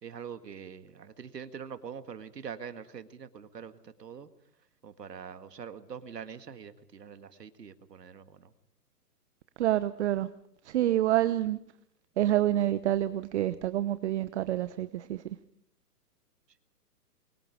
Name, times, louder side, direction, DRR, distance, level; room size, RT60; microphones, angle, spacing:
voice 1, 0.0-4.3 4.8-8.5, right 7 dB, 85° right, 2.0 m, -44 dB
voice 2, 9.6-10.3 10.7-11.6 12.2-15.2, right 13 dB, 45° right, 1.0 m, -27 dB
28.5 x 23.5 x 5.0 m
hypercardioid pair, 135°, 47 cm